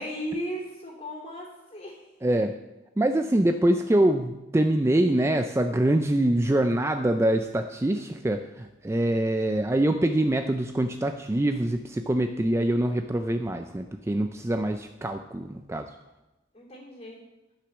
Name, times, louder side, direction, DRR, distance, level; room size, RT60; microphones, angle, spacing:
voice 1, 0.0-2.0 16.5-17.2, equal, 30° left, -2 dB, 2.9 m, -36 dB
voice 2, 2.2-2.5 3.0-15.9, right 1 dB, 15° right, 7 dB, 0.3 m, -24 dB
11.5 x 6.1 x 6.0 m, 1.0 s
head